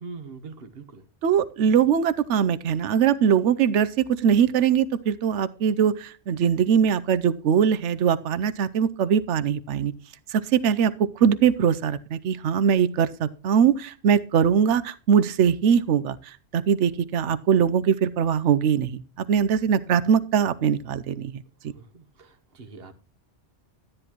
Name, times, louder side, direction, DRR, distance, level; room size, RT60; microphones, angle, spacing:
voice 1, 0.0-1.1 21.8-22.9, right 4 dB, 55° right, 11 dB, 1.3 m, -42 dB
voice 2, 1.2-9.9 10.3-16.2 16.5-19.0 19.3-21.4, right 8 dB, 80° right, 15 dB, 1.0 m, -21 dB
12.5 x 9.9 x 3.0 m, 0.39 s
omnidirectional pair, 1.2 m